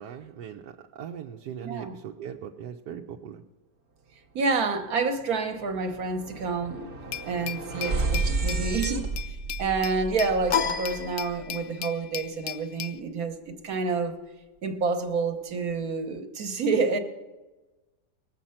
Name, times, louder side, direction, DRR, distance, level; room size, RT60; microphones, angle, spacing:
voice 1, 0.0-3.4, right 8 dB, 80° right, 1 dB, 1.3 m, -39 dB
voice 2, 1.6-1.9 4.3-9.1 9.6-14.1 14.6-17.0, right 4 dB, 60° right, 6 dB, 1.5 m, -28 dB
sound 1, 4.7-4.9 5.2-11.4, right 3 dB, 40° right, 0.9 m, -32 dB
Glass, 7.1-13.0, left 11 dB, 80° left, 1.2 m, -37 dB
sound 2, 10.5-11.9, left 7 dB, 45° left, 0.8 m, -30 dB
20.5 x 7.5 x 5.7 m, 1.2 s
omnidirectional pair, 1.8 m